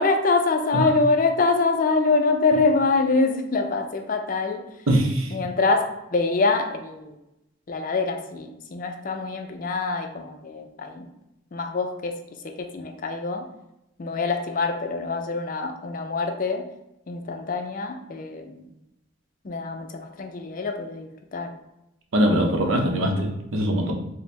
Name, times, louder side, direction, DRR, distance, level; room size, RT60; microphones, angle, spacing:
voice 1, 0.0-4.7 5.3-7.2 7.7-11.1 11.5-13.5 14.0-16.7 17.1-18.7 19.4-21.6, left 3 dB, 40° left, 5 dB, 0.4 m, -25 dB
voice 2, 4.9-5.3 22.1-23.9, equal, 80° right, 2 dB, 0.7 m, -22 dB
4.2 x 2.1 x 3.2 m, 0.88 s
head